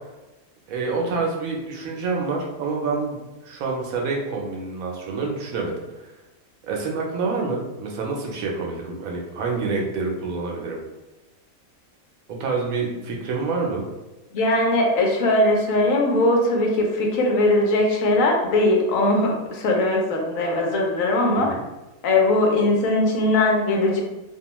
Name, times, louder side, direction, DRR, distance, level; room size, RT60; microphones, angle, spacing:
voice 1, 0.7-3.2 3.4-6.1 6.6-10.8 12.3-13.9 21.4-21.6, right 4 dB, 80° right, -1 dB, 1.0 m, -27 dB
voice 2, 14.3-21.5 22.0-24.0, left 2 dB, 75° left, 1 dB, 1.0 m, -20 dB
2.6 x 2.2 x 2.9 m, 1.1 s
omnidirectional pair, 1.4 m